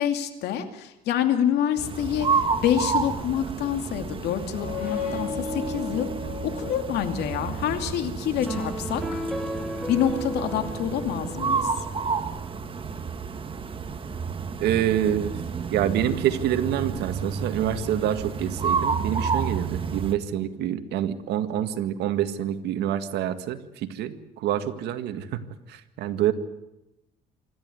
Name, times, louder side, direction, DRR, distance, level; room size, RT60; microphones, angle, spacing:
voice 1, 0.0-6.1 6.5-9.2 9.9-11.7, left 9 dB, 80° left, 6 dB, 2.6 m, -27 dB
sound 1, 1.8-20.2, right 5 dB, 30° right, 1.7 m, -30 dB
sound 2, 4.3-7.9, left 4 dB, 60° left, 7.2 m, -34 dB
sound 3, 8.5-12.0, right 1 dB, ahead, 3.5 m, -34 dB
voice 2, 14.6-15.4 15.7-25.4 25.7-26.3, right 11 dB, 80° right, 9 dB, 1.8 m, -27 dB
26.0 x 13.5 x 9.5 m, 0.92 s
cardioid pair, 110°, 17 cm